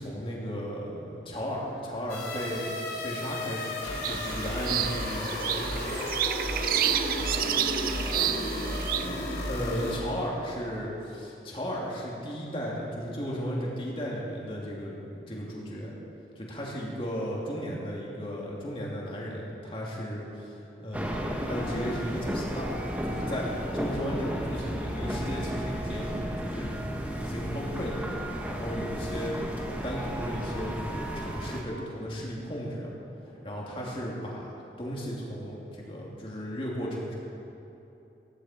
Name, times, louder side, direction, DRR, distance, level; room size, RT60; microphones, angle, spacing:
voice 1, 0.0-5.7 9.2-15.9 16.3-26.7 27.1-28.0 28.5-29.3 29.7-32.9 33.4-37.1, equal, 30° left, -4 dB, 2.9 m, -35 dB
sound 1, 2.1-10.0, left 1 dB, 60° left, 3.4 m, -33 dB
sound 2, 4.0-9.1, right 11 dB, 50° right, 0.4 m, -30 dB
voice 2, 5.1-5.9 6.2-8.8 33.2-33.4, equal, 15° left, -8 dB, 4.4 m, -46 dB
sound 3, 20.9-31.6, equal, 10° right, 1.4 m, -33 dB
17.5 x 16.5 x 4.5 m, 3.0 s
head